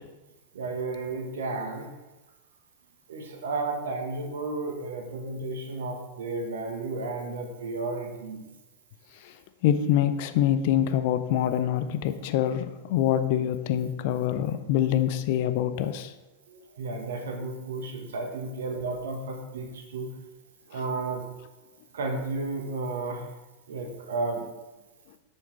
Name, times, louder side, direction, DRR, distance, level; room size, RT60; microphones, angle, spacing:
voice 1, 0.5-1.9 3.1-8.4 16.5-20.1 20.7-21.2 21.9-23.3 23.7-24.4, right 3 dB, 60° right, 3 dB, 1.5 m, -33 dB
voice 2, 9.6-16.1, left 10 dB, 50° left, 10 dB, 0.6 m, -25 dB
8.1 x 6.6 x 4.3 m, 1.1 s
figure-of-eight pair, 90°, 0 cm